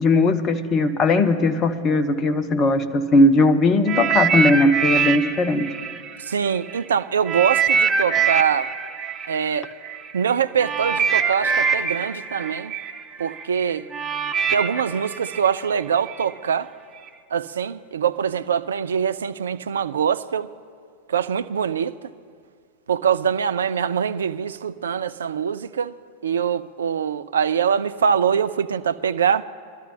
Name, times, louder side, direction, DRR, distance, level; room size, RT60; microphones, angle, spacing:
voice 1, 0.0-5.7, left 2 dB, 30° left, 0.8 m, -18 dB
sound 1, 3.9-6.8 7.3-16.2 17.0-17.1, right 6 dB, 20° right, 0.7 m, -24 dB
voice 2, 6.2-8.7 9.3-9.7 10.1-12.8 13.2-13.9 14.5-16.7 17.3-20.5 21.1-22.0 22.9-25.9 26.2-29.4, right 7 dB, 65° right, 0.4 m, -23 dB
23.5 x 12.5 x 2.8 m
figure-of-eight pair, 90°, 0 cm